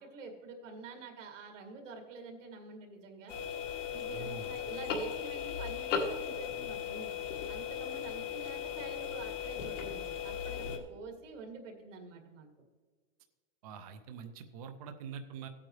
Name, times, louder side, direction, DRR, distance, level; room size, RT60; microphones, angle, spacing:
voice 1, 0.0-3.3 3.9-7.1 7.5-12.5, right 4 dB, 85° right, 3 dB, 2.2 m, -47 dB
sound 1, 3.3-10.8, left 8 dB, 75° left, 1.8 m, -37 dB
voice 2, 4.1-4.5 13.6-15.5, right 6 dB, 35° right, 7 dB, 0.4 m, -45 dB
16.0 x 8.5 x 3.2 m, 1.5 s
supercardioid pair, 175°, 37 cm